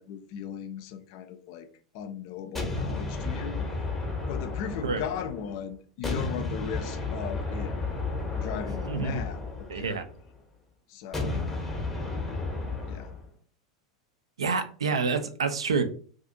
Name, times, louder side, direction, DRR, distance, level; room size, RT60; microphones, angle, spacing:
voice 1, 0.0-1.7 1.9-3.6 4.3-7.7 8.3-9.4 9.7-10.0 10.9-11.3 12.9-13.1, left 8 dB, 50° left, 0.4 m, -37 dB
sound 1, 2.5-5.6 6.0-10.3 11.1-13.2, left 3 dB, 5° left, 0.8 m, -33 dB
voice 2, 8.9-9.2 9.7-10.0 14.4-15.8, right 5 dB, 75° right, 0.3 m, -27 dB
2.4 x 2.4 x 2.6 m
figure-of-eight pair, 90°, 3 cm